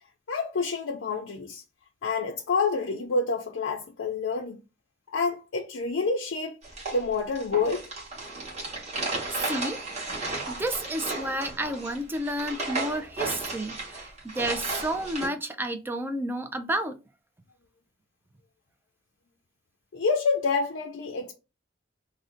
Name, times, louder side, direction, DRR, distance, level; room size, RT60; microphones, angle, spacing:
voice 1, 0.3-1.6 2.0-4.6 5.1-6.6 6.9-7.9 19.9-21.3, left 4 dB, 90° left, 0.5 m, -28 dB
sound 1, 6.6-15.3, right 3 dB, 35° right, 1.1 m, -34 dB
voice 2, 9.3-9.8 10.5-14.1 14.3-17.0, right 1 dB, 10° right, 0.3 m, -31 dB
2.6 x 2.1 x 3.7 m
head